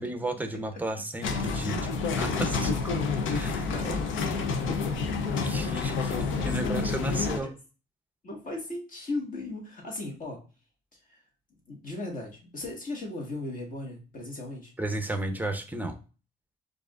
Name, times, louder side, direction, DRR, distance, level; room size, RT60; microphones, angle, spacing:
voice 1, 0.0-1.9 2.1-2.7 3.3-3.7 5.4-6.2 6.4-7.5 14.8-16.0, right 2 dB, 10° right, 7 dB, 0.6 m, -33 dB
sound 1, 1.2-7.4, left 4 dB, 80° left, 0.6 m, -29 dB
voice 2, 3.6-4.0 4.6-4.8 6.1-6.7 7.1-7.5 8.2-10.4 11.1-11.2 11.7-14.7, left 2 dB, 40° left, -1 dB, 1.6 m, -37 dB
4.7 x 2.6 x 2.4 m, 0.34 s
cardioid pair, 90°, 20 cm